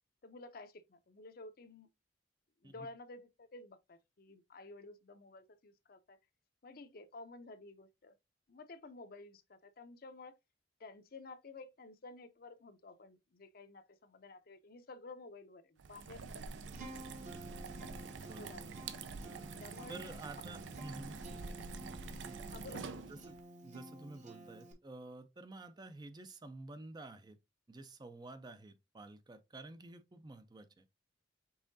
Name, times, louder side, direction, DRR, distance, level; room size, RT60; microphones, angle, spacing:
voice 1, 0.2-1.9 2.6-6.2 6.6-8.2 8.5-10.3 10.8-16.5 18.2-18.8 19.6-20.1 20.4-20.6 22.4-23.0, left 3 dB, 55° left, 0.6 m, -52 dB
sound 1, 15.8-23.4, right 4 dB, 80° right, 0.5 m, -47 dB
Acoustic guitar, 16.7-24.7, right 1 dB, 40° right, 0.9 m, -52 dB
voice 2, 19.9-21.2 22.2-22.4 23.1-23.4 23.6-27.4 27.7-30.9, right 2 dB, 25° right, 0.4 m, -50 dB
5.5 x 3.6 x 2.6 m
head